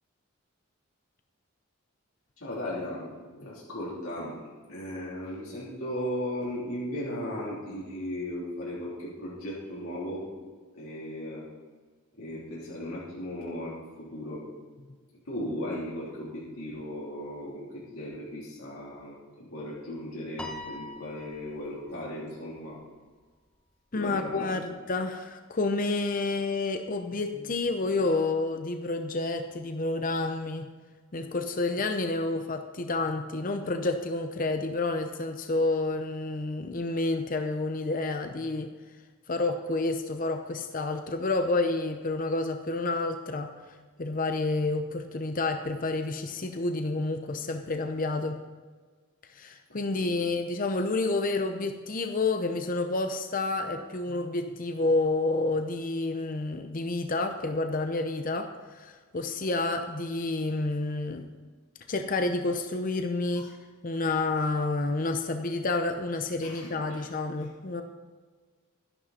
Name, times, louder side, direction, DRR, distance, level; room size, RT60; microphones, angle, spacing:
voice 1, 2.4-4.4 4.7-10.3 10.7-11.5 12.1-14.4 15.2-22.8 23.9-24.5 49.9-50.3 63.3-63.5 66.4-67.1 67.4-67.5, left 1 dB, 85° left, -7 dB, 3.3 m, -37 dB
Piano, 20.4-22.9, left 1 dB, 5° left, 0.9 m, -44 dB
voice 2, 23.9-30.7 31.1-38.7 39.3-43.5 44.0-48.4 49.3-61.2 61.9-63.5 63.8-67.8, left 2 dB, 40° left, 6 dB, 0.7 m, -29 dB
12.5 x 11.0 x 4.3 m, 1.4 s
head